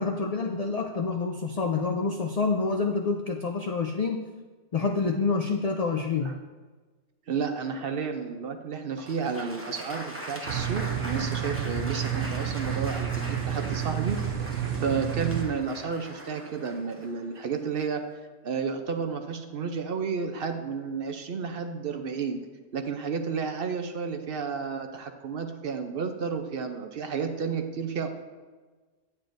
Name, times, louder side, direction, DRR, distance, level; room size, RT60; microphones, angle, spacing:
voice 1, 0.0-4.3 4.7-6.3, left 4 dB, 60° left, 4 dB, 0.4 m, -27 dB
voice 2, 7.3-14.2 14.8-18.0 18.4-22.4 22.7-28.1, right 5 dB, 55° right, 6 dB, 0.8 m, -31 dB
Applause, 9.0-17.9, right 1 dB, 10° right, 0.8 m, -41 dB
sound 1, 10.5-15.4, right 9 dB, 80° right, 1.0 m, -30 dB
9.5 x 8.9 x 2.6 m, 1.3 s
omnidirectional pair, 1.3 m